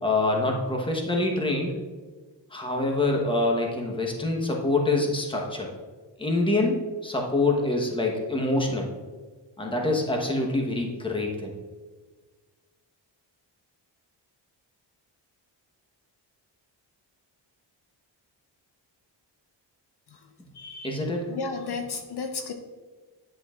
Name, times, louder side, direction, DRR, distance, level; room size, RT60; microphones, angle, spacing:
voice 1, 0.0-1.7 2.5-5.7 6.2-8.9 9.6-11.5 20.8-21.3, left 2 dB, 10° left, 0 dB, 1.1 m, -25 dB
voice 2, 20.6-21.0 21.3-22.5, left 4 dB, 60° left, 5 dB, 0.7 m, -33 dB
10.5 x 6.2 x 2.4 m, 1.4 s
wide cardioid pair, 150°, 46 cm